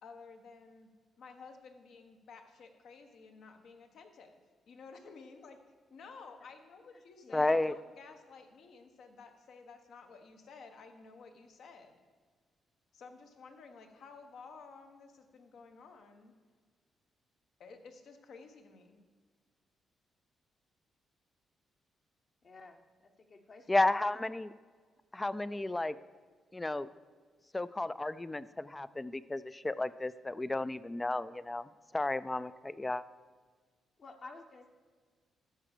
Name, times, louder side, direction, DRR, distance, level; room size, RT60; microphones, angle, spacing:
voice 1, 0.0-0.9 1.2-5.6 5.9-12.0 12.9-16.3 17.6-19.0, left 4 dB, 70° left, 5 dB, 1.2 m, -53 dB
voice 2, 7.3-7.7 23.7-24.5 25.1-26.0 26.5-26.9 27.5-33.0, left 2 dB, 15° left, 16 dB, 0.3 m, -33 dB
voice 3, 22.4-23.8 24.2-24.3 34.0-34.7, left 3 dB, 45° left, 4 dB, 1.1 m, -51 dB
13.5 x 5.0 x 6.7 m, 1.5 s
cardioid pair, 120°, 0 cm